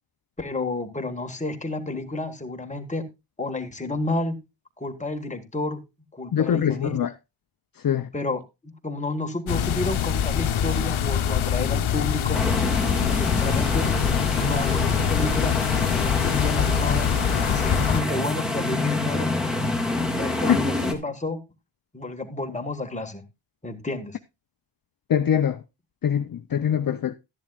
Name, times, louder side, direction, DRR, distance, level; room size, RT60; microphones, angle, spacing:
voice 1, 0.4-3.1 3.4-4.4 4.8-5.8 6.1-6.9 8.1-12.4 13.1-13.9 14.3-15.6 16.0-17.1 17.4-19.3 20.2-21.4 21.9-23.2 23.6-24.2, left 2 dB, 15° left, 1.6 m, -30 dB
voice 2, 6.3-7.1 7.8-8.1 20.5-20.6 25.1-25.6 26.0-27.1, left 9 dB, 45° left, 0.6 m, -23 dB
sound 1, 9.5-18.0, left 8 dB, 85° left, 0.9 m, -24 dB
sound 2, 12.3-20.9, left 2 dB, ahead, 1.7 m, -26 dB
13.5 x 10.5 x 2.4 m
wide cardioid pair, 155°, 47 cm